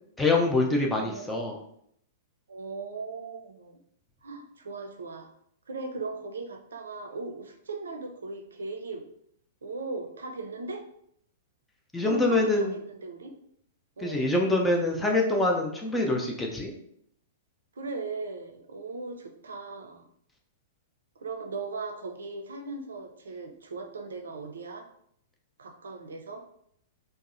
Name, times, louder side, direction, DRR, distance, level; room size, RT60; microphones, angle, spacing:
voice 1, 0.2-1.6 11.9-12.7 14.0-16.7, left 2 dB, 10° left, 0 dB, 0.4 m, -25 dB
voice 2, 0.9-1.6 2.5-3.8 4.2-5.3 5.7-9.0 9.6-10.8 11.9-13.3 14.0-14.3 17.8-20.1 21.2-24.9 25.6-26.4, right 3 dB, 70° right, 4 dB, 0.4 m, -38 dB
2.6 x 2.0 x 2.5 m, 0.68 s
figure-of-eight pair, 105°, 0 cm